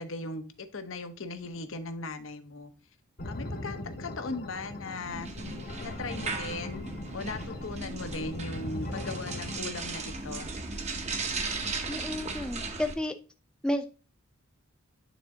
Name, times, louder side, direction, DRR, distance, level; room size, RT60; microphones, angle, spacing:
voice 1, 0.0-2.7 3.2-5.3 5.8-10.5, left 3 dB, 65° left, 10 dB, 0.9 m, -38 dB
sound 1, 3.2-9.6, left 1 dB, 50° left, 1.2 m, -40 dB
sound 2, 5.0-12.9, right 3 dB, 30° right, 0.9 m, -36 dB
voice 2, 11.9-13.1 13.6-13.9, left 1 dB, 5° left, 5 dB, 0.4 m, -31 dB
9.2 x 3.9 x 3.7 m, 0.35 s
head